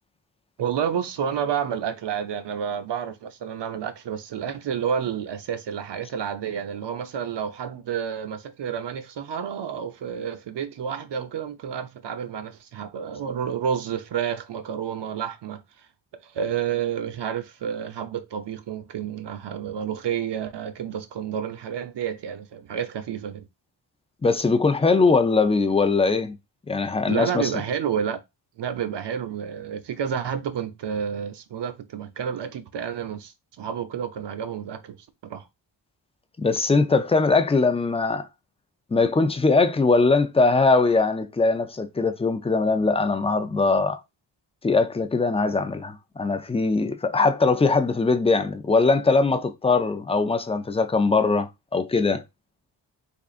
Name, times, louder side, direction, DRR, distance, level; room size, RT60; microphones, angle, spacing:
voice 1, 0.6-15.6 16.2-23.4 27.1-28.2 28.6-35.0 35.2-35.4, right 8 dB, 65° right, 0.7 m, -30 dB
voice 2, 24.2-26.4 26.7-27.6 36.4-38.3 38.9-44.0 44.6-52.2, left 3 dB, 15° left, 0.3 m, -21 dB
3.7 x 3.6 x 2.4 m
wide cardioid pair, 150°, 45 cm